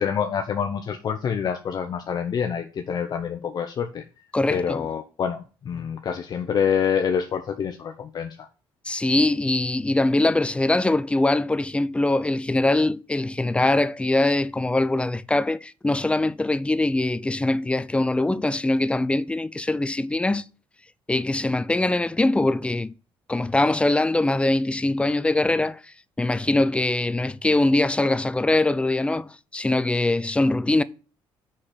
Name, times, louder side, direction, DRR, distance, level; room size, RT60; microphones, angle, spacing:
voice 1, 0.0-4.0 4.5-8.5, left 7 dB, 50° left, 0.9 m, -26 dB
voice 2, 4.3-4.9 8.9-20.4 21.1-22.9 23.3-25.8 26.2-30.8, left 2 dB, 10° left, 0.5 m, -22 dB
6.4 x 5.9 x 6.4 m
cardioid pair, 95°, 9 cm